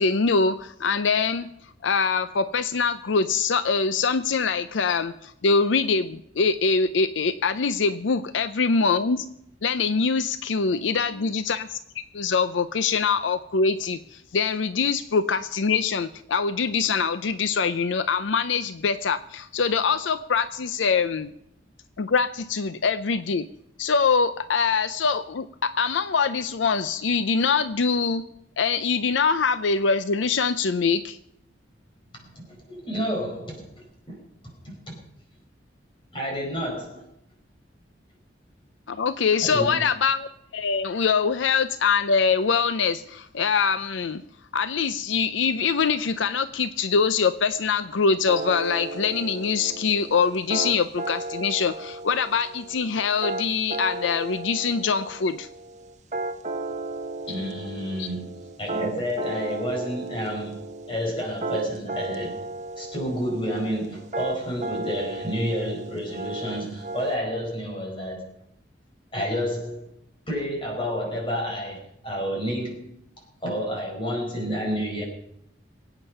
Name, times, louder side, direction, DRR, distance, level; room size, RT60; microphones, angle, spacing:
voice 1, 0.0-1.5 1.8-9.3 9.6-21.3 22.0-23.5 23.8-28.2 28.6-31.2 38.9-40.3 40.5-44.2 44.5-55.5 58.0-58.1, left 5 dB, 85° left, 13 dB, 0.6 m, -24 dB
voice 2, 32.1-33.7 34.1-34.2 34.6-35.0 36.1-37.0 39.4-39.8 57.3-58.3 58.6-60.6 60.9-62.5 62.8-68.3 69.1-69.8 70.3-72.9 73.4-75.0, equal, 25° left, 0 dB, 5.1 m, -30 dB
sound 1, 48.3-67.2, right 2 dB, 40° right, 1.1 m, -34 dB
23.0 x 9.1 x 5.5 m, 0.76 s
head